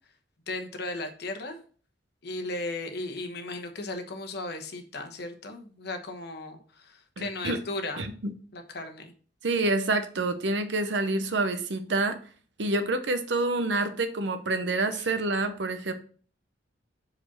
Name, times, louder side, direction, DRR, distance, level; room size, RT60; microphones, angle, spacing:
voice 1, 0.5-1.6 2.2-8.1 8.5-9.1 14.9-15.1, left 2 dB, 60° left, 6 dB, 1.1 m, -36 dB
voice 2, 7.2-7.6 8.0-8.3 9.4-12.2 12.6-15.9, right 2 dB, 70° right, 9 dB, 0.8 m, -27 dB
5.0 x 4.3 x 5.8 m, 0.43 s
head